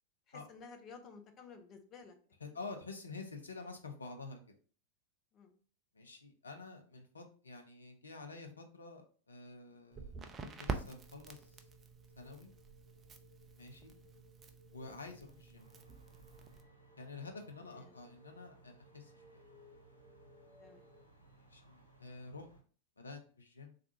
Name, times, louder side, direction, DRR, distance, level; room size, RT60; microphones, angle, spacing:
voice 1, 0.3-2.2 2.4-2.6 5.3-5.5 17.6-17.9 20.6-20.9, left 5 dB, 30° left, 5 dB, 0.6 m, -54 dB
voice 2, 2.4-4.4 5.9-11.6 12.2-12.5 13.6-13.9 14.7-15.6 17.0-19.4 21.5-22.5 23.0-23.7, left 3 dB, 75° left, 4 dB, 0.6 m, -49 dB
sound 1, 9.8-21.0, left 1 dB, ahead, 1.1 m, -65 dB
Crackle, 9.9-16.6, right 4 dB, 20° right, 0.4 m, -47 dB
sound 2, 15.5-22.6, right 3 dB, 85° right, 0.8 m, -63 dB
3.5 x 2.4 x 2.8 m, 0.41 s
figure-of-eight pair, 90°, 0 cm